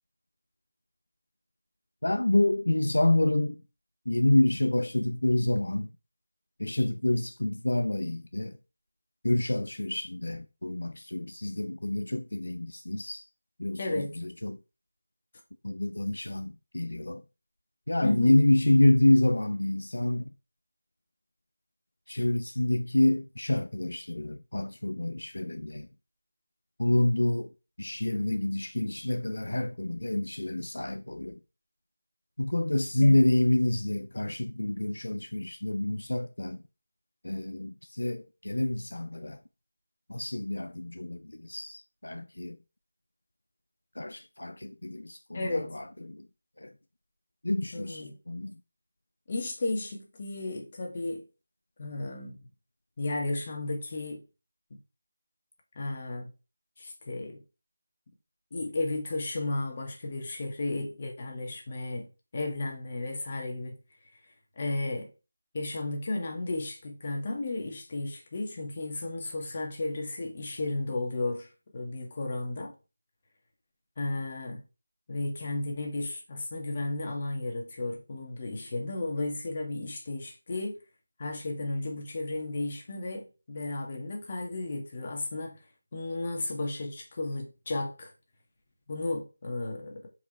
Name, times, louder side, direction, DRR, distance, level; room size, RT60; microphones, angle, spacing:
voice 1, 2.0-3.6 4.1-5.9 6.6-8.6 9.2-13.2 13.6-14.6 15.6-17.2 17.9-20.3 22.1-25.9 26.8-27.5 27.8-31.4 32.4-36.6 37.2-39.4 40.1-42.6 43.9-46.3 46.6-46.7 47.4-48.6, left 1 dB, 80° left, 0.6 m, -27 dB
voice 2, 13.8-14.1 18.0-18.3 33.0-33.2 45.3-45.7 47.7-48.2 49.3-51.2 51.8-52.4 53.0-54.2 54.7-54.8 55.8-56.3 56.8-57.4 58.5-62.1 62.3-63.8 64.6-65.1 65.5-72.7 74.0-74.6 75.1-80.8 81.2-85.6 85.9-88.1 88.9-90.1, left 2 dB, 35° left, 1.8 m, -33 dB
7.5 x 4.8 x 3.4 m
figure-of-eight pair, 165°, 0 cm